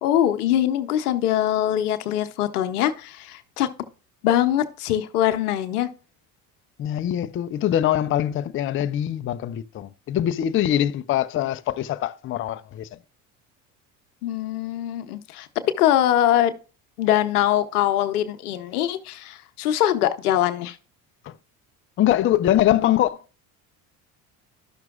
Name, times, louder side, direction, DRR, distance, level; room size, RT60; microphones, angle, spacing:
voice 1, 0.0-3.7 4.2-5.9 14.2-15.5 15.8-16.5 17.0-20.8, left 12 dB, 90° left, 0.7 m, -22 dB
voice 2, 6.8-13.0 21.2-21.3 22.0-23.2, left 12 dB, 30° left, 0.4 m, -23 dB
12.5 x 5.9 x 2.4 m
hypercardioid pair, 75°, 44 cm